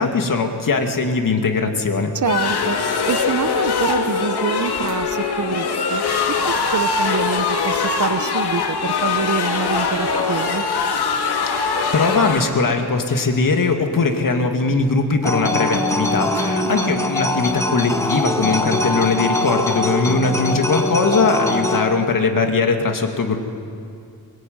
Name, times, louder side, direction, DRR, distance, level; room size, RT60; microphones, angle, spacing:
voice 1, 0.0-2.1 11.5-23.4, left 4 dB, 55° left, 4 dB, 2.4 m, -20 dB
voice 2, 2.1-2.8 3.0-6.0 6.5-10.6 16.3-17.1, right 6 dB, 50° right, 12 dB, 1.0 m, -26 dB
sound 1, 2.2-12.4, left 5 dB, 85° left, 2.3 m, -22 dB
sound 2, 15.2-21.8, left 2 dB, 10° left, 1.7 m, -22 dB
22.5 x 22.0 x 9.5 m, 2.6 s
wide cardioid pair, 135°, 38 cm